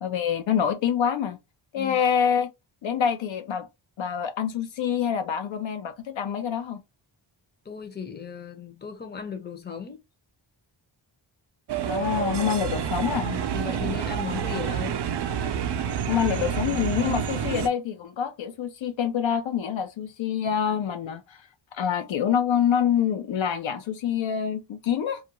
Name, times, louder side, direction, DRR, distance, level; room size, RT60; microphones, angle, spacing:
voice 1, 0.0-1.4 1.7-2.5 2.8-3.7 4.0-6.8 11.8-13.3 16.1-21.4 21.7-25.2, left 8 dB, 70° left, 0.5 m, -26 dB
voice 2, 7.6-10.0 13.2-15.0, left 6 dB, 20° left, 0.6 m, -36 dB
sound 1, 11.7-17.7, right 8 dB, 55° right, 0.5 m, -28 dB
2.4 x 2.2 x 2.9 m
wide cardioid pair, 80°, 48 cm